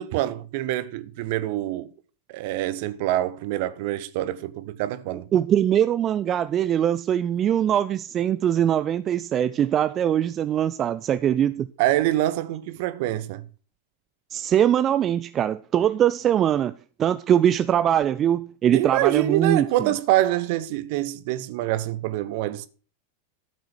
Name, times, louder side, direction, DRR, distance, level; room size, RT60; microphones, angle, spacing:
voice 1, 0.0-1.9 2.3-5.3 11.8-13.4 18.7-22.7, right 14 dB, 50° right, 0.9 m, -25 dB
voice 2, 5.1-11.7 14.3-16.7 17.0-19.9, right 10 dB, 30° right, 0.5 m, -22 dB
13.5 x 6.1 x 6.2 m
figure-of-eight pair, 90°, 0 cm